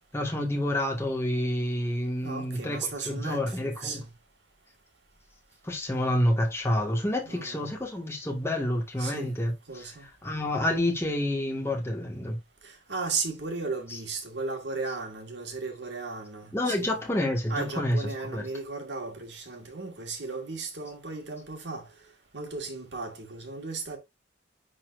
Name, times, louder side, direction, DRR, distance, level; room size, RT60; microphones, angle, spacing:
voice 1, 0.1-4.0 5.6-9.9 10.2-12.4 13.9-14.0 14.9-15.0 16.5-18.5, left 1 dB, 15° left, 1.8 m, -29 dB
voice 2, 2.2-4.1 7.3-7.7 9.0-9.4 9.7-10.1 12.6-17.0 17.5-21.9 22.3-24.0, right 4 dB, 65° right, 2.0 m, -35 dB
10.0 x 4.2 x 2.6 m
head